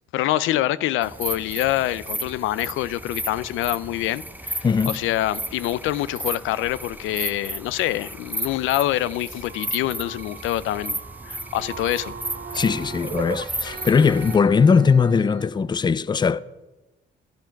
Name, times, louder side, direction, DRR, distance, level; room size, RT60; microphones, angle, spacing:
voice 1, 0.1-11.0 11.3-12.1 12.5-12.6, left 14 dB, 90° left, 0.4 m, -25 dB
sound 1, 1.0-14.4, right 1 dB, 10° right, 0.8 m, -34 dB
voice 2, 4.6-5.0 12.5-16.4, left 5 dB, 20° left, 0.4 m, -19 dB
sound 2, 9.5-15.5, right 7 dB, 50° right, 0.8 m, -38 dB
11.5 x 10.5 x 5.8 m
cardioid pair, 90°, 20 cm